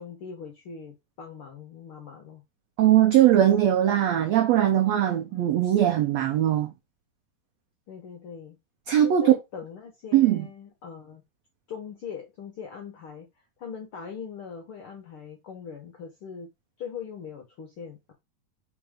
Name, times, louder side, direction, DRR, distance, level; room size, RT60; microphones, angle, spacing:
voice 1, 0.0-2.4 3.3-3.5 5.3-5.5 7.9-8.6 9.0-11.2 11.7-13.3 13.6-16.5 16.8-18.1, left 7 dB, 70° left, 1.3 m, -41 dB
voice 2, 2.8-6.7 8.9-9.3 10.1-10.5, right 11 dB, 85° right, 1.5 m, -20 dB
4.7 x 4.6 x 5.0 m
omnidirectional pair, 4.1 m